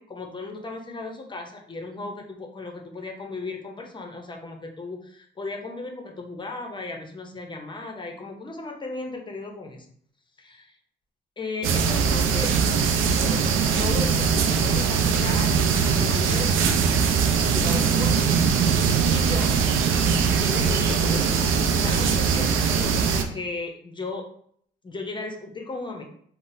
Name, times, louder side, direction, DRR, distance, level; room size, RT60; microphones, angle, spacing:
voice 1, 0.0-9.9 10.4-10.7 11.4-12.5 13.0-16.9 17.5-18.3 19.1-19.6 20.3-24.3 24.8-26.0, left 3 dB, 25° left, 2 dB, 0.6 m, -36 dB
sound 1, 11.6-23.2, right 6 dB, 85° right, 0.4 m, -21 dB
3.8 x 2.0 x 2.5 m, 0.63 s
cardioid pair, 90°, 20 cm